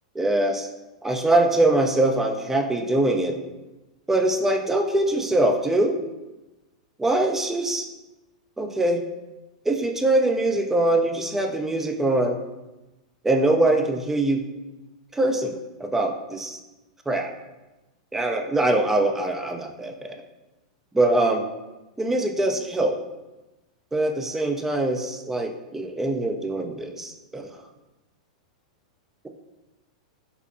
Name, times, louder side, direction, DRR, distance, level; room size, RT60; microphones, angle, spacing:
voice 1, 0.2-0.7 1.0-3.4 4.1-6.0 7.0-7.9 8.6-9.0 9.7-12.4 13.2-14.4 15.1-15.5 15.8-16.6 17.1-17.3 18.1-20.2 20.9-21.5 22.0-23.0 23.9-27.5, right 2 dB, 10° right, 4 dB, 0.4 m, -23 dB
4.4 x 2.5 x 2.5 m, 1.1 s
hypercardioid pair, 105°, 4 cm